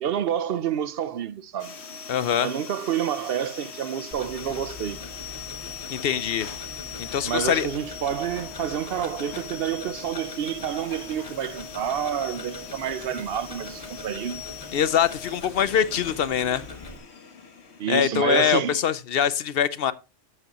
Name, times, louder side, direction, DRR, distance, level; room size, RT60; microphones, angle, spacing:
voice 1, 0.0-1.7 2.4-5.0 7.2-14.4 17.8-18.8, right 9 dB, 65° right, 0.8 m, -28 dB
sound 1, 1.6-18.9, left 7 dB, 85° left, 1.5 m, -41 dB
voice 2, 2.1-2.5 5.9-6.5 7.0-7.7 14.7-16.6 17.9-19.9, left 9 dB, 65° left, 0.8 m, -23 dB
Tick-tock, 4.1-17.0, left 2 dB, 35° left, 1.2 m, -43 dB
11.0 x 7.8 x 2.9 m
omnidirectional pair, 1.1 m